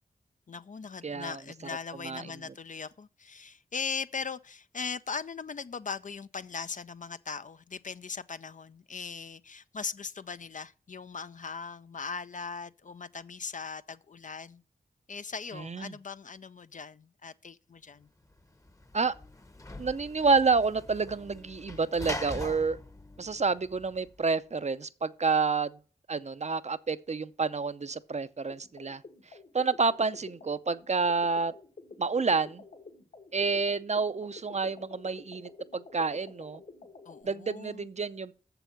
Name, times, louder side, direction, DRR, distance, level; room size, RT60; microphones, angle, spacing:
voice 1, 0.5-14.6 15.1-18.1 37.1-37.9, left 5 dB, 50° left, 0.5 m, -39 dB
voice 2, 1.0-1.4 2.0-2.2 15.6-15.9 18.9-19.1 19.8-22.8 23.2-25.8 26.1-29.0 29.5-31.5 32.0-32.6 33.3-36.6 37.2-38.3, right 4 dB, 45° right, 0.6 m, -29 dB
Sliding door / Slam, 18.3-24.2, left 1 dB, 20° left, 0.9 m, -42 dB
sound 1, 28.5-37.2, left 3 dB, 70° left, 2.1 m, -50 dB
7.0 x 6.9 x 5.8 m
cardioid pair, 45°, 16 cm